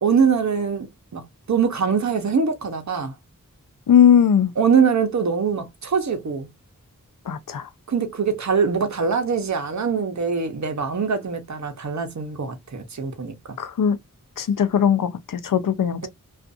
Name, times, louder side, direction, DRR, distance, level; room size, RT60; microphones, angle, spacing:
voice 1, 0.0-3.1 4.6-6.5 7.9-13.4, right 6 dB, 55° right, 0.8 m, -23 dB
voice 2, 3.9-4.5 7.3-7.7 13.6-14.0 14.4-16.1, left 8 dB, 70° left, 0.5 m, -19 dB
2.5 x 2.4 x 2.3 m
wide cardioid pair, 50°, 33 cm